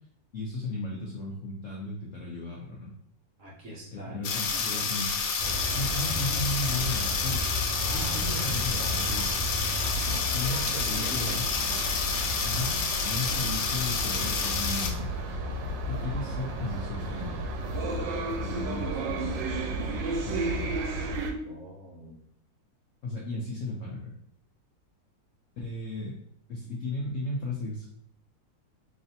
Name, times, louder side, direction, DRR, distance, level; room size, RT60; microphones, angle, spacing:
voice 1, 0.3-2.9 3.9-7.5 7.9-9.4 10.3-11.5 12.4-12.8 13.0-15.1 15.9-17.5 18.4-19.4 20.3-20.7 23.0-24.1 25.6-26.2 26.5-27.9, left 2 dB, 70° left, -2 dB, 0.7 m, -35 dB
voice 2, 3.4-4.9 10.4-11.4 21.4-22.2, right 1 dB, 50° right, -5 dB, 1.2 m, -43 dB
sound 1, 4.2-14.9, left 5 dB, 85° left, 1.3 m, -29 dB
sound 2, 5.4-21.3, right 1 dB, 90° right, 1.3 m, -33 dB
3.9 x 3.2 x 2.8 m, 0.68 s
omnidirectional pair, 2.0 m